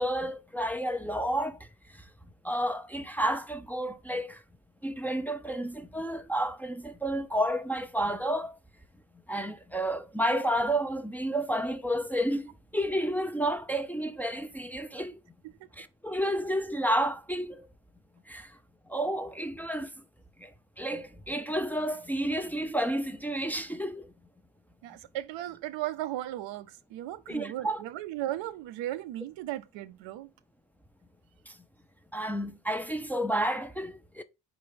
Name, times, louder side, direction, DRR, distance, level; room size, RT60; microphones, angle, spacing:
voice 1, 0.0-1.6 2.4-4.4 4.8-8.5 9.3-15.1 15.8-17.7 18.3-18.5 18.9-19.9 20.4-20.5 20.8-24.1 27.3-27.8 31.5-31.6 32.1-34.2, right 1 dB, 5° left, 0.6 m, -31 dB
voice 2, 24.8-30.3, right 14 dB, 75° right, 0.6 m, -36 dB
4.6 x 4.1 x 5.0 m
supercardioid pair, 55°, 46 cm